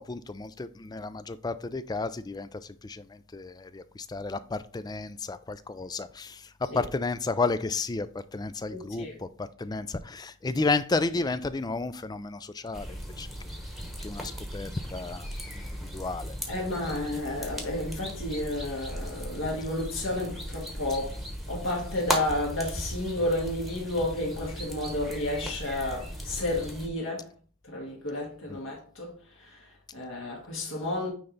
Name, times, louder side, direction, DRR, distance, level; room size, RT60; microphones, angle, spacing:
voice 1, 0.0-13.3 14.0-15.3 15.5-15.7 15.9-16.4 16.9-17.0 28.5-28.6, left 3 dB, 20° left, 0.3 m, -32 dB
voice 2, 8.7-9.2 16.5-21.2 21.5-27.3 27.6-31.1, left 1 dB, 65° left, 1.8 m, -32 dB
sound 1, 12.7-26.9, equal, ahead, 1.1 m, -37 dB
9.3 x 3.3 x 4.0 m
head